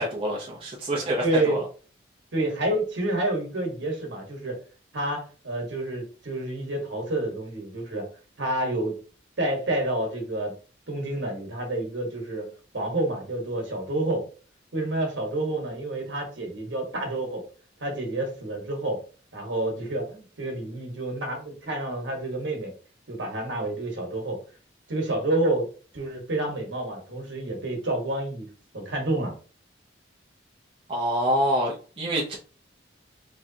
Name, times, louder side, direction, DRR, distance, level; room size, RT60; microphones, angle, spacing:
voice 1, 0.0-1.6 30.9-32.4, equal, 30° right, -4 dB, 0.7 m, -26 dB
voice 2, 1.2-1.6 2.3-4.6 4.9-8.1 8.4-8.9 9.4-10.5 10.9-14.3 14.7-17.4 17.8-19.0 19.3-22.7 23.1-24.4 24.9-25.7 25.9-28.5 28.7-29.3, right 1 dB, 75° right, 2 dB, 1.3 m, -29 dB
3.6 x 3.2 x 2.7 m, 0.38 s
head